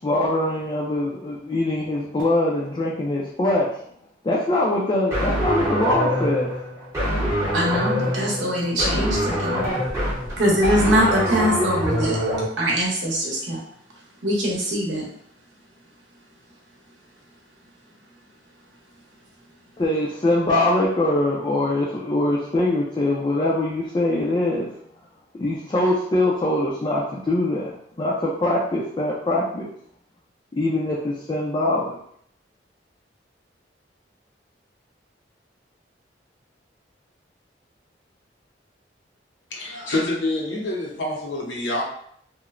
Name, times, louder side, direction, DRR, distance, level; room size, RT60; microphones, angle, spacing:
voice 1, 0.0-3.8 4.2-6.5 19.8-24.7 25.3-29.7 30.5-32.0, left 1 dB, 25° left, -4 dB, 0.3 m, -23 dB
sound 1, 5.1-12.5, equal, 15° right, 0.8 m, -24 dB
voice 2, 7.5-9.7 10.3-12.2 12.6-13.6 14.2-15.1, equal, 80° right, -2 dB, 0.8 m, -22 dB
voice 3, 39.5-41.8, left 2 dB, 80° left, -2 dB, 0.8 m, -26 dB
3.0 x 2.0 x 2.4 m, 0.65 s
head